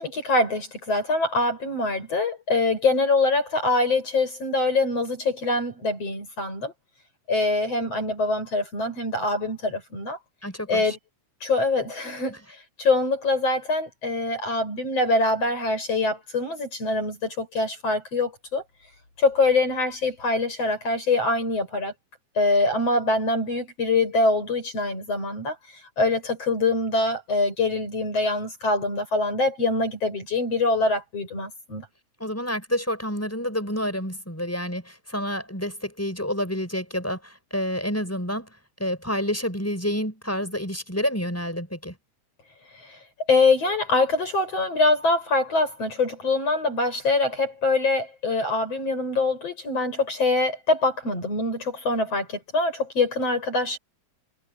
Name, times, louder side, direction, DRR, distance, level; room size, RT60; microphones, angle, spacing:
voice 1, 0.0-6.7 7.3-10.2 10.7-11.0 11.4-12.4 12.8-18.6 19.2-21.9 22.4-25.6 26.0-31.9 42.8-43.0 43.3-53.8, left 3 dB, 50° left, 7.6 m, -24 dB
voice 2, 10.4-11.0 32.2-38.5 38.8-41.9, equal, 5° left, 5.9 m, -29 dB
omnidirectional pair, 3.5 m